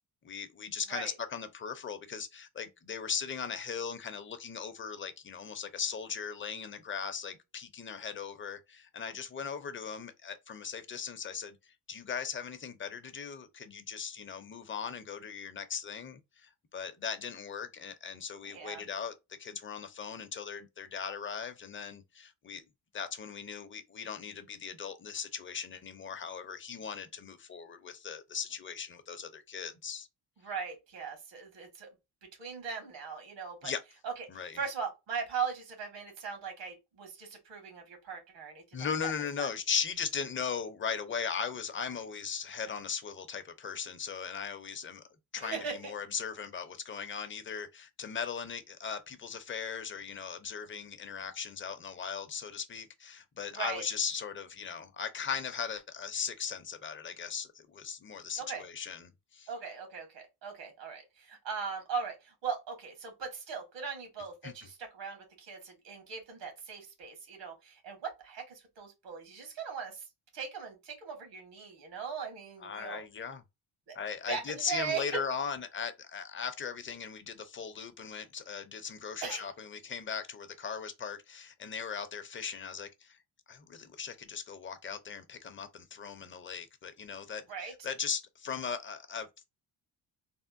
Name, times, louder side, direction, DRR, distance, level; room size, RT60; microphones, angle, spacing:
voice 1, 0.2-19.1 19.4-22.6 22.9-30.1 33.6-33.8 34.3-34.6 38.7-45.0 45.3-59.5 64.4-64.5 72.6-73.4 73.9-83.2 83.5-89.4, left 6 dB, 30° left, 0.6 m, -38 dB
voice 2, 18.4-18.8 30.4-31.9 32.4-33.7 34.0-39.1 39.4-39.5 45.4-45.9 53.5-53.8 58.4-58.6 59.5-70.1 70.3-73.0 73.9-74.0 74.3-75.2 79.2-79.5 87.5-87.7, right 6 dB, 85° right, 1.7 m, -39 dB
3.4 x 2.1 x 2.5 m
cardioid pair, 105°, 42 cm